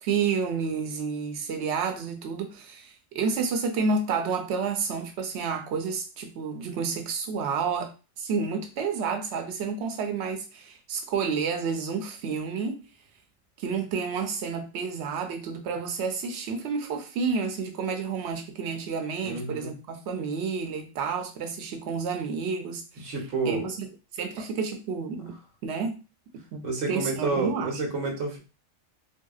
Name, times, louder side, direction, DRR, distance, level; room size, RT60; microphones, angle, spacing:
voice 1, 0.0-7.9 8.2-12.8 13.6-23.1 23.4-23.9 24.1-26.0 26.3-27.7, right 5 dB, 65° right, 0.9 m, -30 dB
voice 2, 19.2-19.7 23.0-23.7 26.6-28.4, right 3 dB, 85° right, 1.2 m, -29 dB
3.4 x 2.6 x 2.4 m
omnidirectional pair, 1.3 m